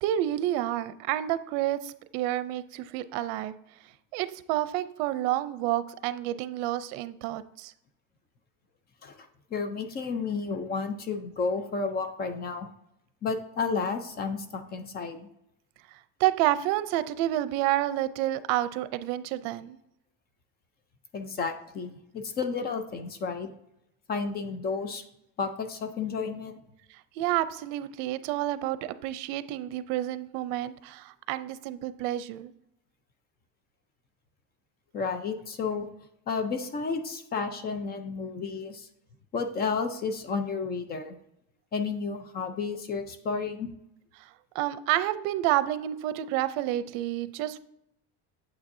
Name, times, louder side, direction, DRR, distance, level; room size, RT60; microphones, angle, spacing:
voice 1, 0.0-3.5 4.1-7.7 16.2-19.8 27.2-32.5 44.5-47.6, right 14 dB, 75° right, 14 dB, 0.6 m, -29 dB
voice 2, 9.0-12.7 13.2-15.3 21.1-23.5 24.1-25.0 25.4-26.6 34.9-35.9 36.3-38.9 39.3-41.2 41.7-43.7, left 4 dB, 30° left, 8 dB, 0.6 m, -32 dB
8.7 x 7.5 x 2.7 m, 0.81 s
cardioid pair, 160°, 34 cm